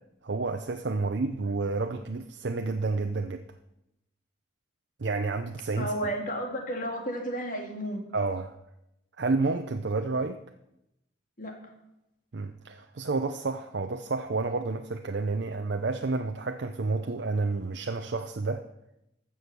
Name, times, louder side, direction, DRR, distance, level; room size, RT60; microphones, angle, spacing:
voice 1, 0.2-3.4 5.0-5.9 8.1-8.5 9.2-10.4 12.3-18.6, right 3 dB, 70° right, 6 dB, 0.6 m, -30 dB
voice 2, 5.8-8.0 11.4-11.7, right 1 dB, 45° left, 2 dB, 2.1 m, -32 dB
14.5 x 6.3 x 6.8 m, 0.85 s
head